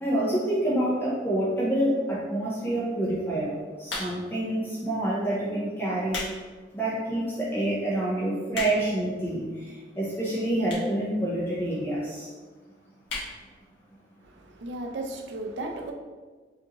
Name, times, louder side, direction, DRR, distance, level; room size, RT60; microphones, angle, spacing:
voice 1, 0.0-3.5 3.8-6.2 6.7-12.3, right 1 dB, 10° left, -8 dB, 0.6 m, -27 dB
sound 1, 3.8-4.4 5.1-5.3 5.8-6.4 6.8-6.9 7.5-7.6 7.8-7.9 8.2-9.0 9.8-9.9 10.6-11.0 11.3-11.4 11.6-11.7 11.9-12.0 12.3-12.6 13.0-13.3 13.7-13.8 14.0-14.1, left 3 dB, 85° left, 1.1 m, -34 dB
voice 2, 14.3-15.9, right 2 dB, 80° right, 3 dB, 0.5 m, -35 dB
4.9 x 2.6 x 2.9 m, 1.4 s
head